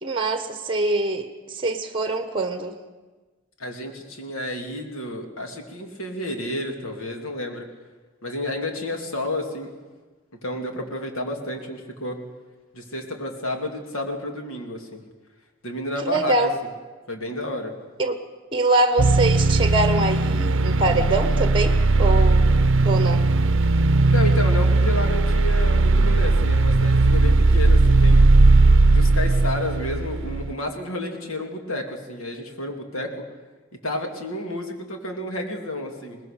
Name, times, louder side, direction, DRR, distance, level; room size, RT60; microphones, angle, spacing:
voice 1, 0.0-2.8 16.0-16.5 18.0-18.1 18.5-22.5 22.8-23.3, right 2 dB, 25° right, 8 dB, 1.3 m, -24 dB
voice 2, 3.6-7.6 8.2-9.7 10.4-12.2 12.7-15.0 15.6-16.3 17.1-17.8 24.1-28.3 28.8-33.1 33.8-36.3, left 1 dB, 80° left, 3 dB, 2.8 m, -31 dB
sound 1, 19.0-30.5, right 2 dB, 65° right, 0.7 m, -18 dB
21.5 x 19.5 x 6.7 m, 1.3 s
head